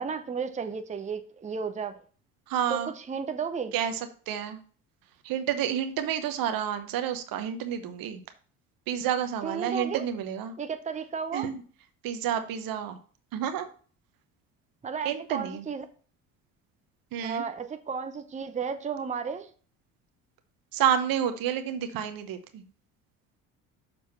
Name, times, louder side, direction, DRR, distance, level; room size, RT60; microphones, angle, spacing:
voice 1, 0.0-1.9 2.7-3.7 9.4-10.0 10.6-11.5 14.8-15.9 17.2-19.5, right 6 dB, 20° right, 8 dB, 0.8 m, -33 dB
voice 2, 2.5-2.9 3.7-4.6 5.2-8.2 8.9-10.6 11.3-11.6 12.0-13.0 13.3-13.7 15.0-15.7 17.1-17.4 20.7-22.6, right 9 dB, 60° right, 9 dB, 1.1 m, -29 dB
6.8 x 3.9 x 5.7 m, 0.41 s
hypercardioid pair, 65°, 40 cm